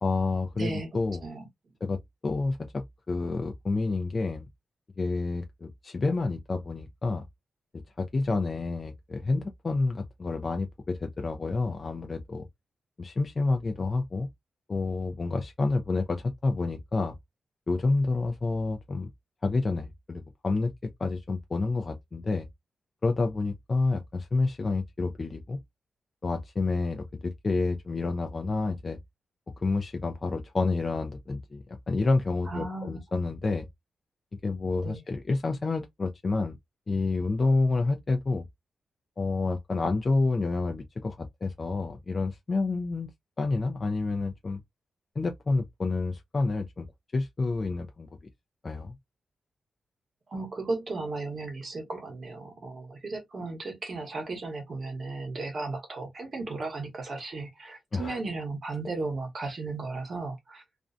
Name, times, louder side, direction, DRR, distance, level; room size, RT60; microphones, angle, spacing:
voice 1, 0.0-1.2 1.8-2.0 2.2-4.5 5.0-7.3 8.0-12.5 13.0-14.3 14.7-17.1 17.7-19.1 19.4-20.7 21.0-22.5 23.0-25.6 26.2-29.0 29.6-33.7 34.4-36.6 36.9-38.5 39.2-43.1 43.4-44.6 45.2-46.8 47.1-48.1 48.6-49.0 57.9-58.2, left 3 dB, 35° left, 0.3 m, -29 dB
voice 2, 0.6-0.9 1.2-1.5 32.5-33.0 34.8-35.0 50.3-60.6, right 3 dB, 45° right, 0.9 m, -35 dB
2.5 x 2.1 x 2.4 m
wide cardioid pair, 125°, 0 cm